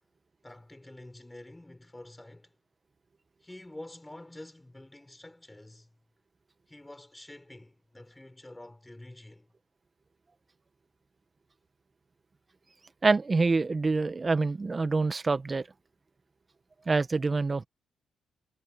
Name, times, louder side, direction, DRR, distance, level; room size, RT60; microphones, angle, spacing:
voice 1, 0.4-2.5 3.4-5.9 6.7-9.5, left 1 dB, 15° left, 7.1 m, -48 dB
voice 2, 13.0-15.7 16.9-17.6, right 3 dB, 35° right, 1.4 m, -26 dB
supercardioid pair, 65°, 0 cm